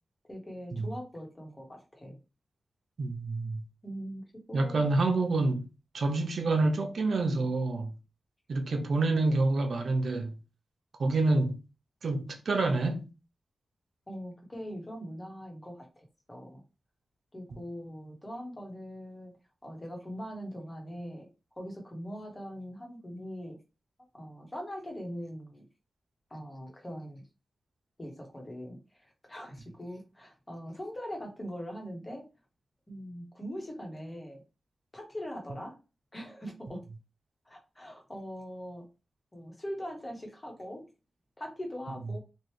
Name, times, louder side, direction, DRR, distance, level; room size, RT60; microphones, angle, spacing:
voice 1, 0.3-2.2 3.8-4.9 14.1-16.6 17.3-19.3 19.6-21.3 21.5-23.6 24.1-25.7 26.3-27.3 28.0-32.3 32.9-34.4 34.9-35.8 36.1-36.9 37.4-38.9 39.3-40.9 41.4-42.2, equal, 25° left, 1.2 m, -41 dB
voice 2, 3.0-3.6 4.5-5.7 5.9-7.9 8.5-10.3 11.0-11.6 12.0-13.1, right 2 dB, 70° right, 0.6 m, -27 dB
3.2 x 2.4 x 3.1 m
wide cardioid pair, 90°, 0 cm